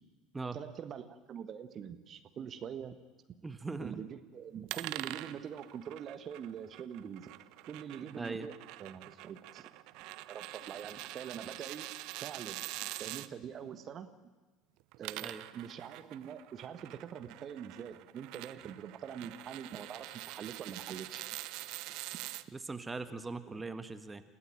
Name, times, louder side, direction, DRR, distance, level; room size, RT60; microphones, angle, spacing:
voice 1, 0.5-3.0 3.8-7.3 7.7-8.5 8.8-9.7 10.3-11.8 12.2-14.1 15.0-21.2 23.5-23.6, right 8 dB, 40° right, 10 dB, 1.5 m, -44 dB
voice 2, 3.4-4.0 8.2-8.5 15.2-15.4 22.5-24.2, right 3 dB, 15° right, 11 dB, 1.5 m, -40 dB
sound 1, 4.7-13.3 14.8-22.4, right 18 dB, 55° right, 0.8 m, -45 dB
28.5 x 17.0 x 9.0 m, 1.3 s
figure-of-eight pair, 65°, 0 cm